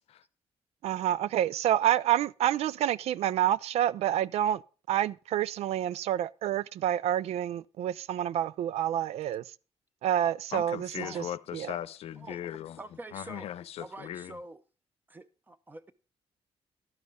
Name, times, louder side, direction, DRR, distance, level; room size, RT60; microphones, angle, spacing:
voice 1, 0.8-4.6 4.9-9.4 10.0-10.9 11.1-11.2 11.5-11.7, right 11 dB, 75° right, 0.4 m, -28 dB
voice 2, 10.5-12.8 13.1-14.4, left 11 dB, 70° left, 0.7 m, -38 dB
voice 3, 12.2-13.5 13.8-14.6 15.1-15.9, right 2 dB, 15° right, 0.8 m, -46 dB
12.5 x 9.5 x 3.6 m
cardioid pair, 155°, 11 cm